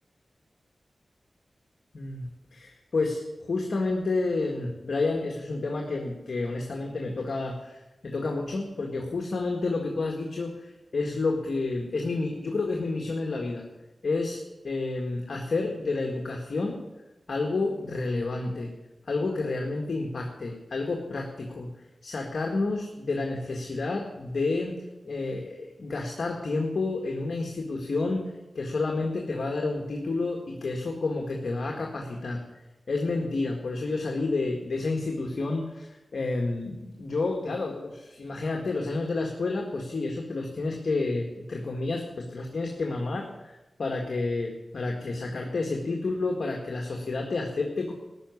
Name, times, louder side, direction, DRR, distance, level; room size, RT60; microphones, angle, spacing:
voice 1, 1.9-13.7 14.0-16.8 17.3-18.7 19.0-21.7 22.0-24.8 25.0-28.2 28.5-32.4 32.9-47.9, left 3 dB, 70° left, 1 dB, 1.7 m, -30 dB
14.5 x 6.1 x 9.6 m, 1.0 s
cardioid pair, 55°, 0 cm